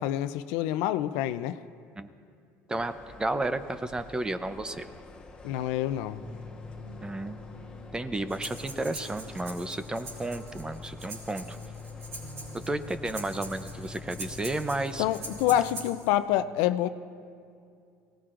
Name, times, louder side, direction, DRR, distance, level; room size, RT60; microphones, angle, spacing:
voice 1, 0.0-1.6 5.4-6.2 15.0-16.9, left 12 dB, 80° left, 12 dB, 0.5 m, -27 dB
sound 1, 2.7-15.6, left 3 dB, 15° left, 1.2 m, -49 dB
voice 2, 2.7-4.9 7.0-7.4 7.9-11.6 12.7-15.0, right 2 dB, 15° right, 11 dB, 0.6 m, -32 dB
sound 2, 6.2-15.9, left 3 dB, 80° right, 4.4 m, -45 dB
Breathing, 8.3-16.1, right 2 dB, 55° right, 3.8 m, -44 dB
24.0 x 18.0 x 2.5 m, 2.4 s
supercardioid pair, 110°, 6 cm